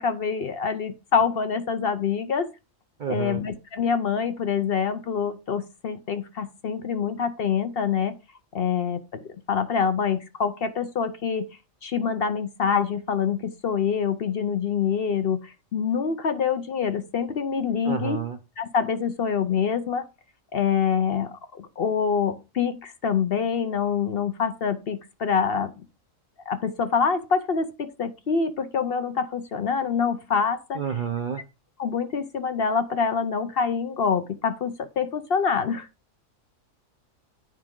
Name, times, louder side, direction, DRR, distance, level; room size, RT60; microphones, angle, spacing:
voice 1, 0.0-2.5 3.1-8.2 8.5-9.2 9.5-11.5 11.8-18.2 18.6-20.0 20.5-25.7 26.5-30.8 31.8-35.9, left 6 dB, 55° left, 0.8 m, -26 dB
voice 2, 3.0-3.4 17.8-18.4 30.7-31.4, right 7 dB, 55° right, 0.6 m, -29 dB
9.5 x 4.8 x 3.7 m
omnidirectional pair, 1.4 m